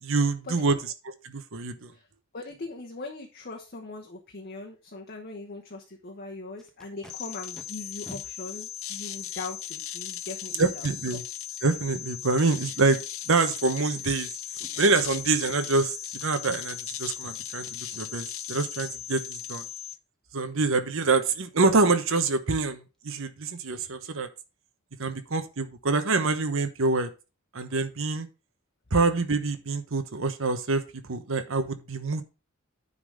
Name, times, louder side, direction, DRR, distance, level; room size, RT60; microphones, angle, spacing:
voice 1, 0.0-1.9 10.6-11.2 11.6-13.0 13.3-14.3 14.8-19.7 20.3-24.3 25.0-27.1 27.5-28.3 28.9-32.2, right 3 dB, 65° right, 9 dB, 1.0 m, -26 dB
voice 2, 2.3-10.7, left 3 dB, 45° left, 0 dB, 1.1 m, -40 dB
Packing tape duct tape, 6.6-7.1 7.5-7.6 8.0-8.2 9.0-9.1 12.5-12.9 13.4-13.5 13.8-14.2 14.5-14.9 15.5-16.1 16.4-16.8 17.2-17.4 17.6-18.0 21.1-21.2 21.5-21.6 22.0-22.2 22.4-22.7 22.9-23.0, left 1 dB, 5° left, 1.1 m, -50 dB
sound 1, 7.1-20.0, left 11 dB, 70° left, 0.6 m, -38 dB
9.8 x 4.1 x 4.9 m, 0.30 s
head